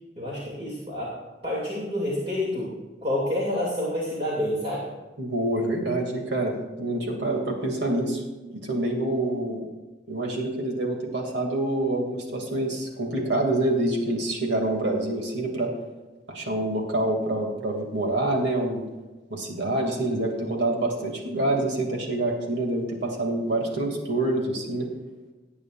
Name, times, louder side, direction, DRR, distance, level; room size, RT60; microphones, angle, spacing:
voice 1, 0.2-4.9, left 1 dB, 35° right, -5 dB, 2.6 m, -29 dB
voice 2, 5.2-8.2 8.5-9.6 10.1-15.7 16.3-18.8 19.3-24.9, right 1 dB, 80° right, 1 dB, 2.5 m, -26 dB
19.0 x 8.5 x 2.5 m, 1.2 s
head